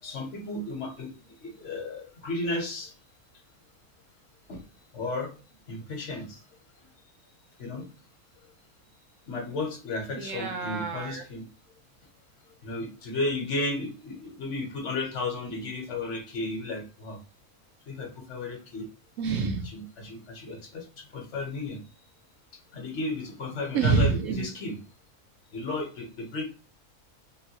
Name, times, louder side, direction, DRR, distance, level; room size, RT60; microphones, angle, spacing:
voice 1, 0.0-1.1 1.4-2.9 4.5-4.6 4.9-5.3 5.7-6.4 7.6-7.9 9.3-11.4 12.6-17.2 17.9-18.9 19.6-21.8 22.7-24.8 25.5-26.4, left 2 dB, 55° left, 2 dB, 1.2 m, -34 dB
voice 2, 10.1-11.2 19.2-19.7 23.7-24.5, right 5 dB, 70° right, 5 dB, 0.9 m, -27 dB
3.8 x 2.2 x 2.7 m, 0.36 s
omnidirectional pair, 1.6 m